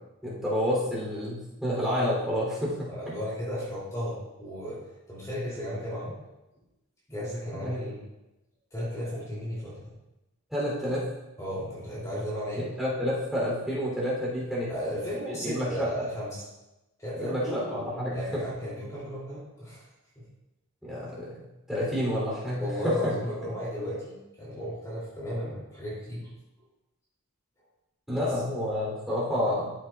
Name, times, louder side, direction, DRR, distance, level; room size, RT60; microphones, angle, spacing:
voice 1, 0.2-2.9 7.5-7.8 10.5-11.0 12.6-14.7 15.4-15.9 17.2-18.4 20.8-21.4 21.7-23.1 28.1-29.7, equal, ahead, -7 dB, 3.0 m, -29 dB
voice 2, 2.9-4.8 5.1-6.1 7.1-8.0 8.7-9.8 11.4-12.7 14.7-16.4 17.0-17.7 18.1-19.8 22.6-26.3 28.2-28.3, equal, 15° left, -8 dB, 2.8 m, -34 dB
13.0 x 7.3 x 2.4 m, 0.97 s
head